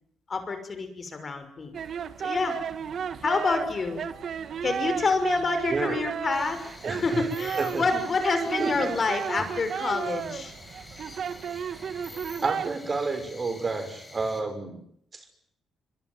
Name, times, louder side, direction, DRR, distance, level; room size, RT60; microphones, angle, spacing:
voice 1, 0.3-1.7 2.2-2.6 3.2-4.0 4.6-10.5, left 4 dB, 40° left, 9 dB, 6.1 m, -28 dB
sound 1, 1.7-12.8, right 7 dB, 60° right, 1.7 m, -33 dB
voice 2, 5.7-6.0 6.8-7.3 7.6-8.0 8.6-8.9 12.4-14.8 15.1-15.2, right 3 dB, 35° right, 9 dB, 6.1 m, -30 dB
sound 2, 6.3-14.4, left 2 dB, 20° left, 6.3 m, -47 dB
24.5 x 23.5 x 9.6 m, 0.70 s
cardioid pair, 90°, 0 cm